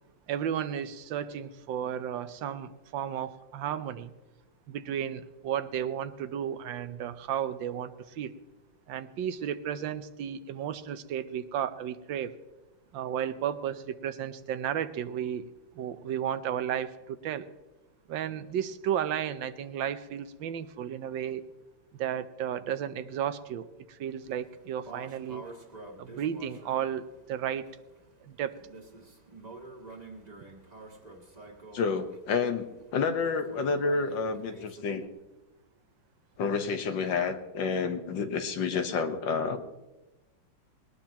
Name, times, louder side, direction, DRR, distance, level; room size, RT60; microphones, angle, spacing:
voice 1, 0.3-4.1 4.7-8.3 8.9-12.3 12.9-15.5 15.7-17.5 18.1-21.4 22.0-25.4 26.0-27.7 28.2-28.6, right 9 dB, 80° right, 12 dB, 1.5 m, -33 dB
sound 1, 24.2-35.1, right 2 dB, 20° right, 1.7 m, -49 dB
voice 2, 31.7-32.7 32.9-35.0 36.4-39.6, left 5 dB, 75° left, 8 dB, 1.8 m, -29 dB
20.5 x 19.0 x 3.0 m, 1.1 s
omnidirectional pair, 2.1 m